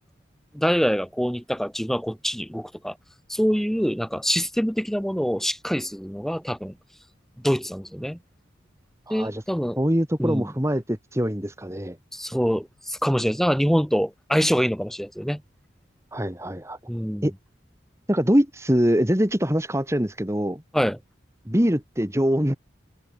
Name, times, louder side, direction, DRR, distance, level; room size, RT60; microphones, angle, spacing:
voice 1, 0.5-2.9 3.3-6.7 7.4-8.2 9.1-9.8 10.2-10.5 12.1-15.4 16.9-17.3 20.7-21.0, equal, ahead, 3.6 m, -25 dB
voice 2, 9.1-9.4 9.8-12.0 16.1-16.8 17.2-17.3 18.1-20.6 21.5-22.5, equal, 15° right, 2.0 m, -23 dB
head